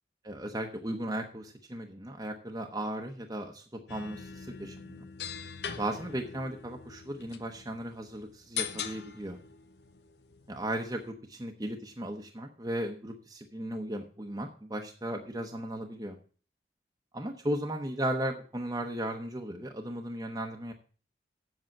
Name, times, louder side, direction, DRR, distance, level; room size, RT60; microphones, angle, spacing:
voice 1, 0.2-5.1 5.8-9.4 10.5-16.2 17.1-20.7, right 1 dB, 20° right, 2 dB, 0.9 m, -36 dB
sound 1, 3.9-11.1, left 7 dB, 70° left, 0.9 m, -42 dB
7.8 x 7.1 x 7.4 m, 0.40 s
head